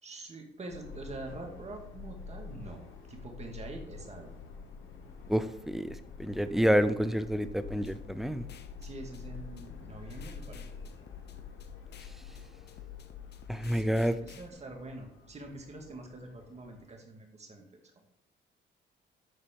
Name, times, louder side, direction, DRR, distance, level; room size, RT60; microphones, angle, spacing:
voice 1, 0.0-2.8 3.1-4.3 8.8-10.7 13.7-17.7, right 2 dB, 35° right, 2 dB, 2.1 m, -45 dB
Subway metro underground, 0.7-16.8, left 4 dB, 80° left, 1.4 m, -48 dB
voice 2, 5.3-5.9 6.2-8.4 13.5-14.2, equal, ahead, 11 dB, 0.6 m, -28 dB
sound 1, 7.6-14.5, left 12 dB, 60° left, 0.8 m, -50 dB
11.0 x 4.1 x 5.3 m, 0.77 s
cardioid pair, 90°, 20 cm